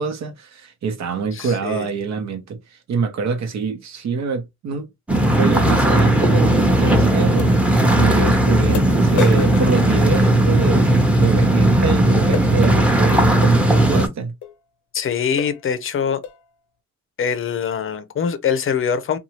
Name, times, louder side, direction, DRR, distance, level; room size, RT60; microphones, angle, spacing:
voice 1, 0.0-4.9 5.3-10.9 11.2-14.3, right 5 dB, 65° right, 0.9 m, -25 dB
voice 2, 1.3-1.9 14.9-16.2 17.2-19.2, left 7 dB, 45° left, 0.6 m, -23 dB
sound 1, 5.1-14.1, right 1 dB, 5° right, 0.8 m, -16 dB
sound 2, 6.4-6.5 7.4-7.5 8.2-8.3 8.7-10.7 12.3-12.5 13.4-13.6 14.4-14.6 15.0-15.1 15.4-15.7 16.2-16.5, left 8 dB, 80° left, 0.6 m, -31 dB
2.7 x 2.3 x 3.0 m
cardioid pair, 90°, 30 cm